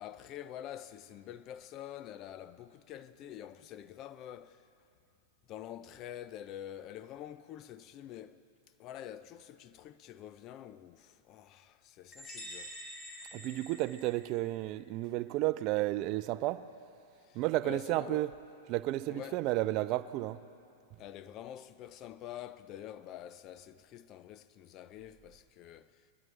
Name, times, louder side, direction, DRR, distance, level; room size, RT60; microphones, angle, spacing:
voice 1, 0.0-4.7 5.5-8.4 8.8-12.8 17.2-18.3 19.1-19.4 21.0-26.1, left 11 dB, 40° left, 0.5 m, -47 dB
sound 1, 12.1-14.7, equal, 20° left, 2.9 m, -47 dB
voice 2, 13.3-16.7 17.3-18.3 18.7-20.4, right 17 dB, 45° right, 0.4 m, -32 dB
22.0 x 12.0 x 3.3 m
hypercardioid pair, 105°, 0 cm